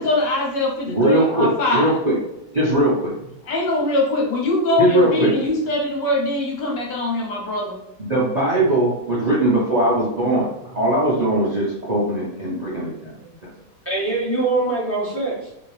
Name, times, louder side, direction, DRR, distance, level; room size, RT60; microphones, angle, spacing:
voice 1, 0.0-2.0 3.4-7.8, left 2 dB, 75° left, 0 dB, 1.5 m, -22 dB
voice 2, 0.9-2.1 2.5-3.1 4.8-5.3 8.1-13.1 13.4-13.5, right 1 dB, 45° right, -7 dB, 0.5 m, -20 dB
voice 3, 11.7-12.1 12.5-12.7 13.2-13.3 13.8-15.5, right 2 dB, 10° left, -7 dB, 0.8 m, -24 dB
2.9 x 2.8 x 3.2 m, 0.86 s
omnidirectional pair, 1.9 m